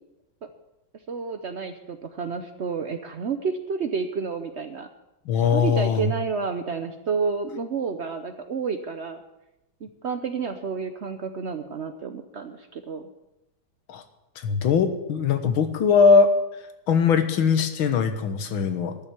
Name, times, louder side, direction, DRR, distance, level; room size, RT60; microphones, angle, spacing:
voice 1, 1.1-4.9 5.5-9.2 9.8-13.1, right 5 dB, 70° right, 8 dB, 0.6 m, -30 dB
voice 2, 5.3-6.1 13.9-14.0 14.4-16.3 16.9-19.0, left 5 dB, 90° left, 9 dB, 2.0 m, -20 dB
12.5 x 7.3 x 9.7 m, 0.94 s
omnidirectional pair, 2.1 m